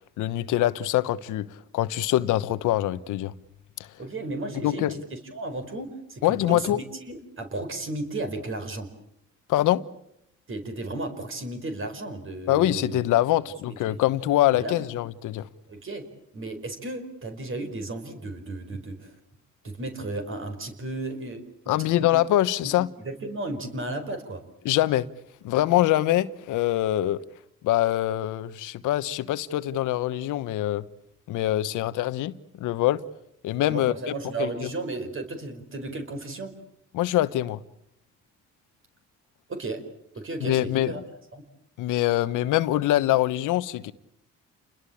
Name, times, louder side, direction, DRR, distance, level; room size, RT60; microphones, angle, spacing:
voice 1, 0.2-1.5 1.7-3.3 4.6-4.9 6.2-6.8 9.5-9.8 12.5-15.5 21.7-22.9 24.6-25.0 25.4-27.2 27.6-30.8 31.3-33.0 33.4-33.9 34.4-34.5 36.9-37.6 40.4-41.0 41.8-43.9, left 14 dB, 90° left, 1.1 m, -24 dB
voice 2, 4.0-8.9 10.5-13.0 13.7-14.0 14.6-14.9 15.7-16.0 16.3-19.1 19.6-22.1 22.6-24.4 33.7-36.5 39.5-39.8 40.1-41.0 41.3-41.4, right 2 dB, 45° right, 4.8 m, -34 dB
29.5 x 21.5 x 8.6 m
cardioid pair, 90°, 30 cm